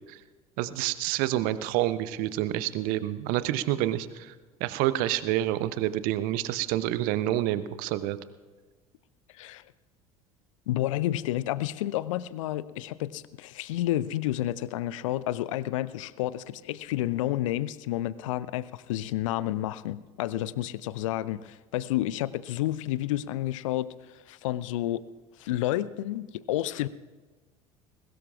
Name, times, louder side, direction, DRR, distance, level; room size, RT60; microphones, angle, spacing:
voice 1, 0.6-4.3 4.6-8.2, right 14 dB, 50° right, 15 dB, 0.8 m, -28 dB
voice 2, 10.7-23.9 24.1-25.0 25.4-26.9, left 14 dB, 60° left, 19 dB, 0.5 m, -30 dB
21.0 x 18.5 x 2.5 m, 1.3 s
figure-of-eight pair, 65°, 18 cm